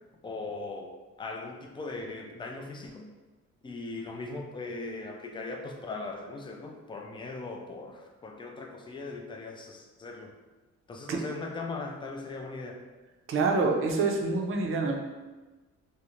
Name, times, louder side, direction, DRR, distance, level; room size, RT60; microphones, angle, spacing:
voice 1, 0.2-3.1 3.6-10.3 10.9-12.8, left 3 dB, 15° left, 2 dB, 0.4 m, -39 dB
voice 2, 13.3-15.0, right 3 dB, 45° right, 1 dB, 0.5 m, -26 dB
2.5 x 2.1 x 3.0 m, 1.2 s
cardioid pair, 90°, 30 cm